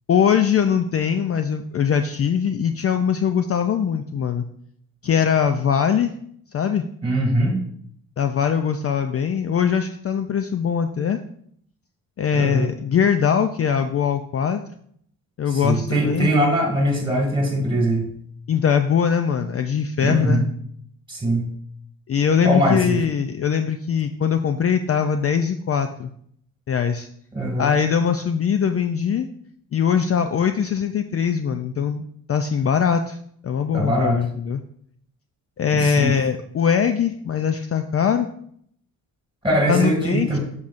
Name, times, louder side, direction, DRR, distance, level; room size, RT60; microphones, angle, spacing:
voice 1, 0.1-4.4 5.0-6.1 6.5-6.8 8.2-11.2 12.2-14.6 15.4-16.3 18.5-20.4 22.1-26.1 26.7-27.1 27.6-29.3 29.7-32.0 32.3-33.2 33.4-34.6 35.6-38.3 39.7-40.4, left 7 dB, 40° left, 8 dB, 0.4 m, -21 dB
voice 2, 7.0-7.6 12.3-12.7 15.5-18.1 20.0-20.5 21.1-21.5 22.4-23.0 27.3-27.7 33.7-34.2 35.7-36.1 39.4-40.4, right 1 dB, 15° right, 2 dB, 2.4 m, -21 dB
6.9 x 6.4 x 2.5 m, 0.65 s
cardioid pair, 70°, 38 cm